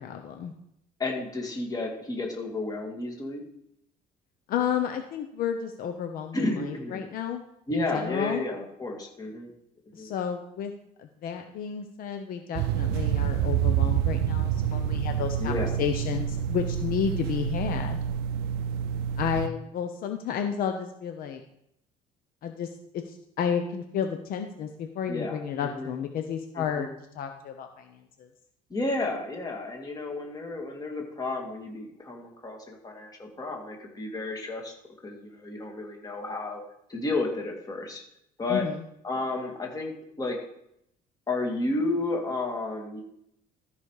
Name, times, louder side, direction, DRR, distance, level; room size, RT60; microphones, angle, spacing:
voice 1, 0.0-0.5 4.5-7.4 7.7-8.4 9.9-10.7 11.0-18.0 19.2-21.4 22.4-22.7 22.9-26.9 27.1-28.3 38.5-38.8, left 8 dB, 60° left, 5 dB, 0.9 m, -31 dB
voice 2, 1.0-3.4 6.3-7.0 7.7-9.5 9.9-10.1 15.4-15.7 25.1-25.9 26.6-26.9 28.7-34.7 35.0-36.6 36.9-38.0 38.4-38.7 39.0-39.9 40.2-40.4 41.3-43.0, left 2 dB, 25° left, 1 dB, 2.2 m, -32 dB
sound 1, 12.5-19.5, right 9 dB, 85° right, 0.5 m, -27 dB
13.5 x 5.2 x 4.9 m, 0.76 s
cardioid pair, 125°, 16 cm